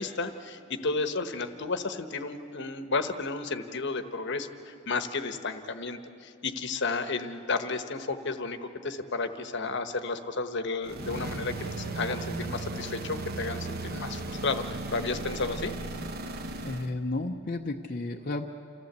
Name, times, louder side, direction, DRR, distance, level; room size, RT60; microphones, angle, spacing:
voice 1, 0.0-15.7, left 3 dB, 55° left, 9 dB, 1.1 m, -32 dB
sound 1, 10.8-16.9, right 2 dB, 45° right, 1.0 m, -36 dB
voice 2, 16.3-18.5, left 2 dB, 40° left, 0 dB, 0.7 m, -33 dB
28.0 x 14.5 x 8.1 m, 2.7 s
head